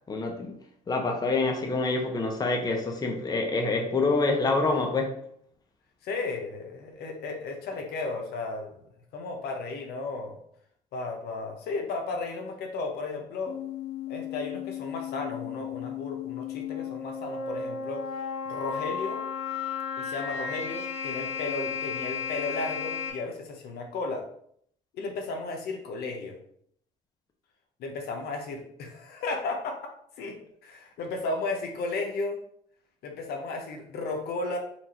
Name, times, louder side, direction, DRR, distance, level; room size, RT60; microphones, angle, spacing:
voice 1, 0.1-0.5 0.9-5.2, left 3 dB, 25° left, 0.8 m, -26 dB
voice 2, 6.0-8.8 9.1-10.3 10.9-13.6 14.1-18.0 18.5-19.2 20.0-24.2 24.9-26.4 27.8-29.7 30.2-30.4 30.6-32.4 33.0-34.6, left 3 dB, 75° left, 1.0 m, -34 dB
sound 1, 13.5-23.1, left 7 dB, 40° left, 1.8 m, -34 dB
4.5 x 2.6 x 4.3 m
cardioid pair, 110°, 17 cm